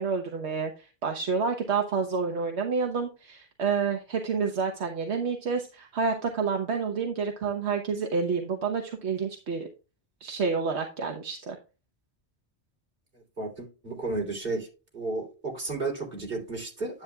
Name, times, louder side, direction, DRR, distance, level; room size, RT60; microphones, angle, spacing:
voice 1, 0.0-9.7 10.2-11.6, right 5 dB, 75° right, 1.4 m, -29 dB
voice 2, 13.4-14.7 14.9-17.0, right 3 dB, 55° right, 3.5 m, -33 dB
10.5 x 8.5 x 2.3 m
omnidirectional pair, 1.1 m